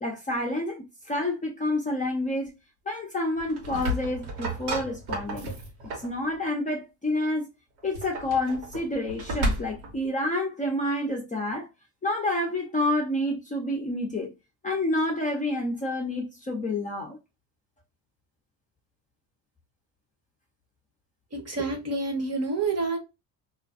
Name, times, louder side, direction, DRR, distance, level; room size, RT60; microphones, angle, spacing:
voice 1, 0.0-2.5 2.9-5.5 6.0-7.5 7.8-11.7 12.0-14.3 14.6-17.2, left 1 dB, 15° left, 0.6 m, -28 dB
sound 1, 3.4-6.2 7.8-10.0, right 1 dB, 80° right, 1.2 m, -32 dB
voice 2, 21.3-23.0, right 3 dB, 35° right, 0.9 m, -28 dB
2.4 x 2.2 x 2.5 m
supercardioid pair, 90°, 47 cm